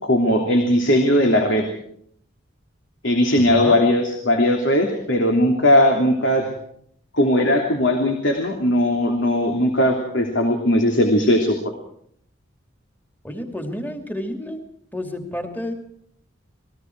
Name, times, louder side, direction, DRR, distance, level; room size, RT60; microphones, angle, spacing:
voice 1, 0.0-1.6 3.0-6.5 7.1-11.6, left 1 dB, 65° left, 2 dB, 3.1 m, -18 dB
voice 2, 3.4-3.8 13.2-14.6 14.9-15.7, left 1 dB, 10° left, 4 dB, 2.8 m, -30 dB
29.0 x 20.0 x 4.8 m, 0.66 s
head